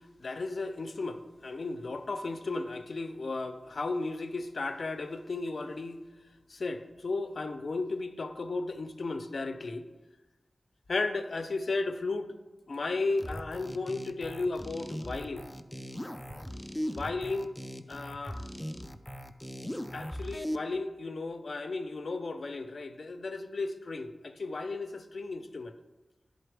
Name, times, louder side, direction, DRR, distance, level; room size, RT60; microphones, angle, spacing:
voice 1, 0.2-6.0 6.5-9.9 10.9-12.3 12.7-15.5 16.9-17.6 17.9-18.4 19.9-25.7, left 3 dB, 70° left, 8 dB, 0.5 m, -34 dB
sound 1, 13.2-20.6, equal, 10° left, 0.5 m, -39 dB
10.5 x 3.9 x 3.4 m, 1.1 s
wide cardioid pair, 60°, 0 cm